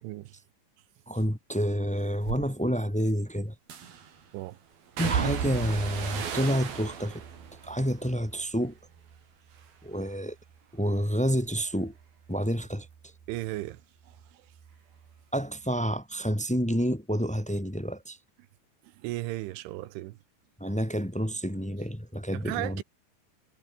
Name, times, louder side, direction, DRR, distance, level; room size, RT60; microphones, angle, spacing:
voice 1, 0.0-0.3 4.3-4.6 13.3-13.8 14.1-14.5 18.8-20.2 22.3-22.8, right 17 dB, 85° right, 3.4 m, -36 dB
voice 2, 1.0-3.5 5.0-7.2 7.6-8.8 9.8-10.4 10.7-11.9 12.3-12.9 15.3-18.2 20.6-22.8, equal, 10° left, 0.3 m, -29 dB
sound 1, 2.2-2.5 3.7-4.2 5.0-9.2 9.5-10.1 10.5-13.8 14.1-15.2 15.5-15.6, right 7 dB, 50° right, 5.0 m, -36 dB
omnidirectional pair, 5.6 m